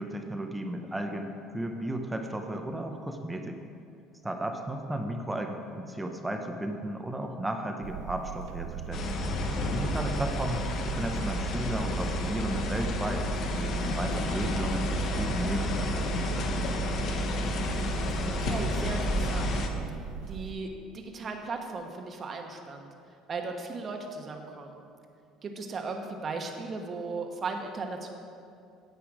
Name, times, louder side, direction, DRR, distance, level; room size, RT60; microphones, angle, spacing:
voice 1, 0.0-3.6 4.2-9.1 9.7-13.3 13.5-16.8, right 1 dB, 10° right, 4 dB, 0.7 m, -34 dB
sound 1, 7.8-20.5, right 8 dB, 80° right, 0.5 m, -40 dB
sound 2, 8.9-19.7, left 1 dB, 50° left, 1.0 m, -30 dB
voice 2, 9.6-10.0 18.2-19.5 20.3-20.7 20.9-22.9 23.3-24.8 25.4-28.1, right 4 dB, 35° right, 3 dB, 1.2 m, -37 dB
10.0 x 8.2 x 4.9 m, 2.5 s
cardioid pair, 120°, 0 cm